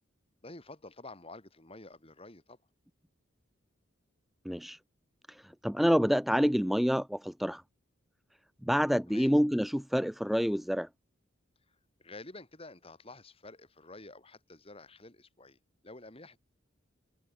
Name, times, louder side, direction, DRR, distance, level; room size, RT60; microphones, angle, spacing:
voice 1, 0.4-2.6 9.1-9.3 11.7-15.6 15.8-16.4, left 2 dB, 30° left, 3.2 m, -49 dB
voice 2, 4.4-4.8 5.3-7.6 8.6-10.9, equal, ahead, 0.6 m, -28 dB
head